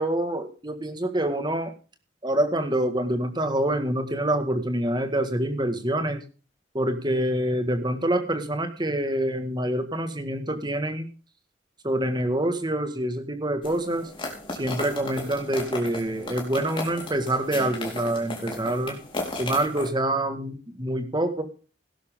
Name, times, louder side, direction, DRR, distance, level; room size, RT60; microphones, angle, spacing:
voice 1, 0.0-1.7 2.2-6.2 6.7-11.1 11.8-14.0 14.6-19.0 19.4-21.4, right 1 dB, 25° right, 7 dB, 1.8 m, -26 dB
sound 1, 13.6-19.9, left 2 dB, 30° left, 4.0 m, -35 dB
17.5 x 10.5 x 3.7 m, 0.36 s
head